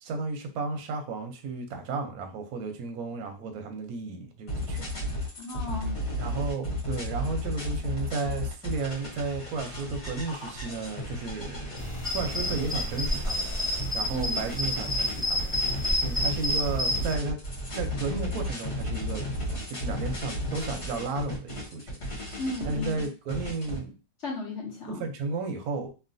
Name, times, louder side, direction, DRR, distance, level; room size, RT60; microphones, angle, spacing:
voice 1, 0.0-4.9 6.2-13.5 13.8-15.6 16.0-17.4 17.7-22.4 22.7-24.0 24.9-25.9, right 4 dB, 65° right, 4 dB, 1.0 m, -33 dB
sound 1, 4.5-23.8, left 1 dB, 40° left, 1.5 m, -34 dB
voice 2, 5.4-6.0 14.1-14.5 22.4-23.1 24.2-25.0, left 2 dB, 60° left, -2 dB, 0.7 m, -35 dB
sound 2, 11.8-17.1, left 1 dB, 10° right, 0.3 m, -29 dB
3.1 x 2.5 x 2.6 m, 0.32 s
omnidirectional pair, 1.9 m